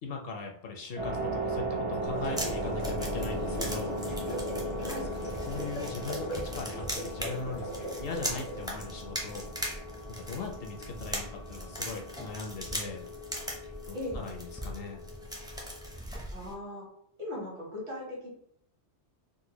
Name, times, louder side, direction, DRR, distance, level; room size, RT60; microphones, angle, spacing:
voice 1, 0.0-4.0 4.8-9.5 10.2-13.0 13.9-15.0, left 4 dB, 65° left, 2 dB, 0.7 m, -40 dB
sound 1, 1.0-15.9, right 1 dB, 85° right, 1.5 m, -38 dB
sound 2, 1.9-8.7, equal, 85° left, 1.3 m, -39 dB
sound 3, 2.0-16.5, equal, 5° right, 0.3 m, -40 dB
voice 2, 13.9-14.3 16.3-16.9 17.2-18.3, left 1 dB, 70° right, -4 dB, 1.6 m, -38 dB
3.8 x 2.1 x 2.9 m, 0.69 s
omnidirectional pair, 1.2 m